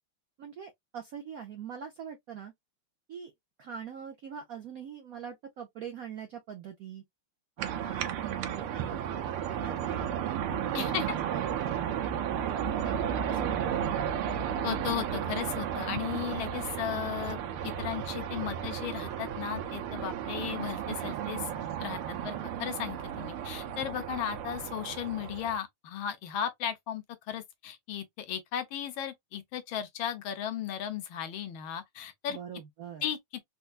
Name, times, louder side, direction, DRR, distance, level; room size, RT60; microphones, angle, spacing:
voice 1, 0.4-2.5 3.1-3.3 3.6-7.0 7.6-10.2 10.6-12.0 12.7-13.0 13.3-13.9 32.3-33.1, right 8 dB, 75° right, 0.8 m, -42 dB
sound 1, 7.6-25.6, right 9 dB, 90° right, 1.6 m, -34 dB
voice 2, 10.7-11.0 14.6-17.4 17.6-21.5 21.8-32.4 33.0-33.2, left 9 dB, 75° left, 1.5 m, -35 dB
4.4 x 2.2 x 2.4 m
omnidirectional pair, 2.3 m